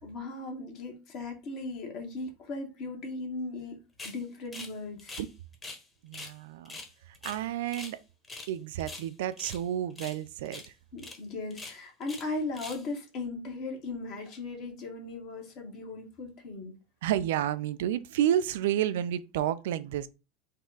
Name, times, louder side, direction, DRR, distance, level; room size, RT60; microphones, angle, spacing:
voice 1, 0.0-3.8 4.0-5.2 10.9-16.8, left 3 dB, 50° left, 1.2 m, -37 dB
sound 1, 4.0-4.2 4.5-5.8 6.1-6.3 6.6-8.0 8.2-8.5 8.8-9.6 9.9-10.2 10.4-10.7 11.0-11.2 11.5-12.3 12.5-12.9, left 3 dB, 20° left, 1.1 m, -43 dB
voice 2, 6.0-6.8 7.2-8.0 8.5-10.6 17.0-20.1, right 11 dB, 65° right, 0.3 m, -30 dB
4.1 x 2.3 x 3.8 m
figure-of-eight pair, 80°, 0 cm